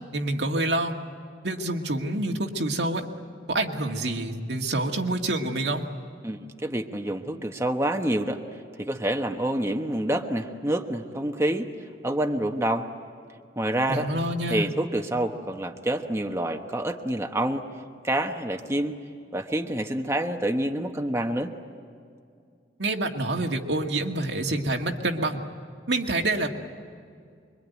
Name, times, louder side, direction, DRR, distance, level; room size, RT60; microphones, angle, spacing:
voice 1, 0.1-0.9 1.4-3.1 3.5-5.8 13.9-14.7 22.8-25.4 25.9-26.5, right 2 dB, 85° right, 2 dB, 2.0 m, -27 dB
voice 2, 6.2-8.4 8.8-11.7 12.0-12.9 13.6-14.1 14.5-17.7 18.0-18.9 19.3-21.5, right 1 dB, 15° right, 4 dB, 1.1 m, -27 dB
25.5 x 23.0 x 9.4 m, 2.3 s
head